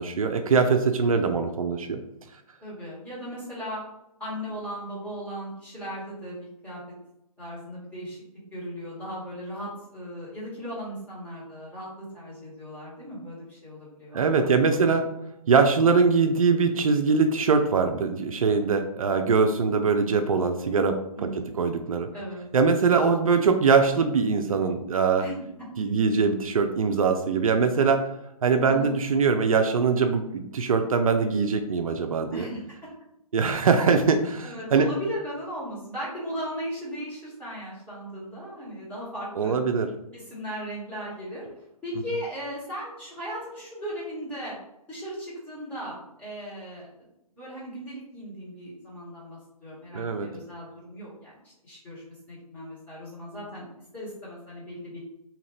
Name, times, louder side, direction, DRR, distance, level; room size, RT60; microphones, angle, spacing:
voice 1, 0.0-2.0 14.1-15.0 15.5-22.1 22.5-25.3 25.8-28.1 28.4-32.5 33.3-34.9 39.4-39.9 49.9-50.3, right 5 dB, 65° right, 6 dB, 0.4 m, -22 dB
voice 2, 2.6-3.8 4.2-6.8 7.4-8.2 8.5-14.8 21.1-21.5 22.1-22.4 25.2-25.5 28.6-29.0 32.3-32.6 34.4-39.6 40.1-41.5 41.8-44.6 44.9-46.9 47.4-51.3 51.6-53.7 53.9-55.0, equal, 10° left, -9 dB, 1.3 m, -37 dB
2.8 x 2.5 x 3.2 m, 0.86 s
figure-of-eight pair, 140°, 20 cm